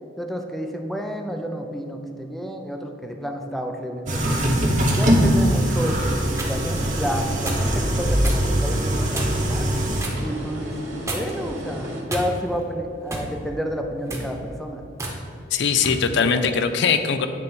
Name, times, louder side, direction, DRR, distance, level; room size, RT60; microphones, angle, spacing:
voice 1, 0.2-4.4 5.0-9.7 10.2-10.8 11.1-14.8, equal, ahead, 3 dB, 0.5 m, -30 dB
sound 1, 4.1-10.0, equal, 40° right, 1.2 m, -22 dB
sound 2, 5.7-12.0, equal, 75° right, 1.8 m, -35 dB
sound 3, 6.4-6.6 7.4-7.7 8.2-8.4 9.1-9.5 10.0-10.2 11.1-11.5 12.1-12.6 13.1-13.3 14.0-14.3 15.0-15.2 15.8-16.0, right 1 dB, 15° right, 1.1 m, -30 dB
voice 2, 15.5-17.3, left 6 dB, 65° left, 9 dB, 0.5 m, -21 dB
8.9 x 4.0 x 5.5 m, 2.5 s
head